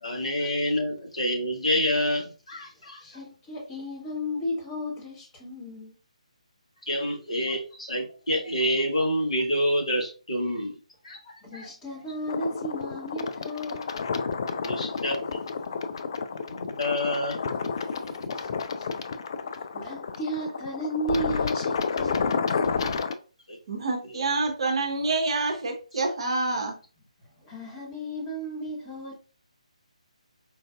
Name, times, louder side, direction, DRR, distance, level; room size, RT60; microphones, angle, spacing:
voice 1, 0.0-3.0 6.8-10.8 11.0-11.7 14.6-15.4 16.5-17.4 23.5-23.6, left 1 dB, 60° left, 1.2 m, -28 dB
voice 2, 3.0-5.9 11.4-13.9 14.9-15.1 15.4-15.5 15.7-16.0 17.6-18.5 18.8-19.0 19.5-22.5 27.2-29.1, equal, 15° left, 1.0 m, -35 dB
sound 1, 12.3-23.1, left 5 dB, 40° left, 0.3 m, -30 dB
voice 3, 23.7-26.7, right 3 dB, 45° right, 0.8 m, -27 dB
4.6 x 2.5 x 2.3 m
figure-of-eight pair, 145°, 4 cm